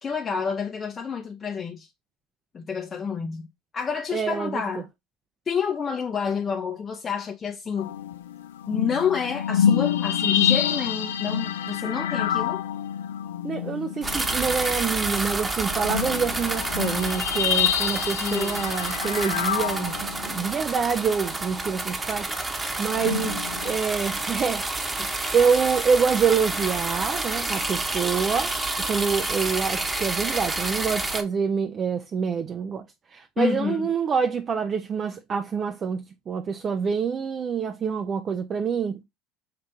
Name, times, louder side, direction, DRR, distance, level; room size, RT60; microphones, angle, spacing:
voice 1, 0.0-1.9 2.5-3.5 3.7-4.9 5.5-7.9 8.7-12.6 18.2-18.6 23.0-23.3 25.0-25.1 33.4-33.8, left 6 dB, 35° left, 0.7 m, -29 dB
voice 2, 4.1-4.6 13.4-22.3 22.8-39.0, right 6 dB, 40° right, 0.5 m, -26 dB
sound 1, 7.8-14.8 15.3-15.4 15.7-20.6 22.8-23.8, left 9 dB, 85° left, 0.5 m, -27 dB
sound 2, 14.0-31.2, right 2 dB, 20° right, 1.0 m, -29 dB
5.7 x 2.5 x 3.3 m
hypercardioid pair, 75°, 0 cm